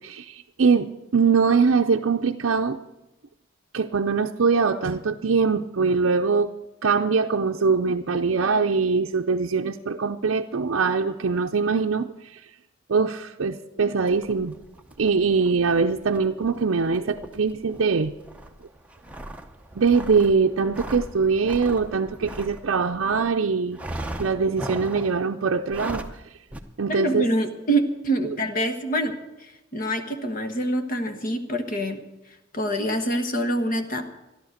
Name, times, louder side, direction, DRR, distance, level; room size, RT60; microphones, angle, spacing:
voice 1, 0.0-2.8 3.7-6.5 6.8-12.1 12.9-14.5 15.0-18.1 19.8-23.8 24.2-26.0 26.8-27.2, right 5 dB, 65° right, 2 dB, 0.5 m, -22 dB
sound 1, 14.1-23.3 23.7-25.2 25.6-26.2 26.5-26.6, right 1 dB, 5° right, 0.7 m, -38 dB
voice 2, 26.9-29.1 29.7-32.0 32.5-34.1, right 1 dB, 40° left, 7 dB, 1.1 m, -25 dB
14.0 x 11.0 x 6.5 m, 0.98 s
head